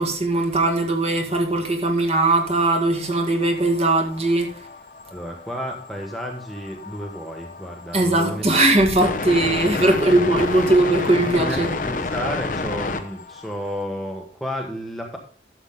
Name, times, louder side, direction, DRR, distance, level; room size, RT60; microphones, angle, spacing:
voice 1, 0.0-4.5 7.9-11.8, right 2 dB, 35° right, 1.9 m, -19 dB
sound 1, 2.0-13.8, left 3 dB, 45° left, 0.8 m, -31 dB
voice 2, 5.1-8.5 11.1-15.2, equal, ahead, 1.2 m, -32 dB
12.0 x 7.3 x 3.7 m
head